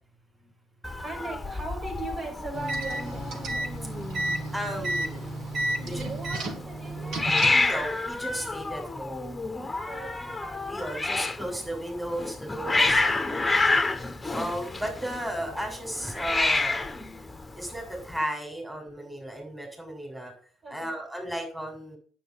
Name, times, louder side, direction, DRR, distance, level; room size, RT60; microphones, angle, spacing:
voice 1, 0.2-3.8 5.8-7.9 9.8-10.4 20.6-21.0, right 2 dB, 40° right, 7.8 m, -40 dB
Hiss, 0.8-18.2, left 3 dB, 20° left, 1.3 m, -29 dB
sound 1, 2.5-7.7, right 1 dB, 60° right, 2.2 m, -32 dB
voice 2, 4.5-5.3 5.9-6.0 7.5-9.4 10.7-13.8 14.3-16.9 17.5-20.3 20.7-22.0, right 1 dB, 5° right, 7.0 m, -35 dB
9.1 x 9.0 x 7.3 m
hypercardioid pair, 50°, 0 cm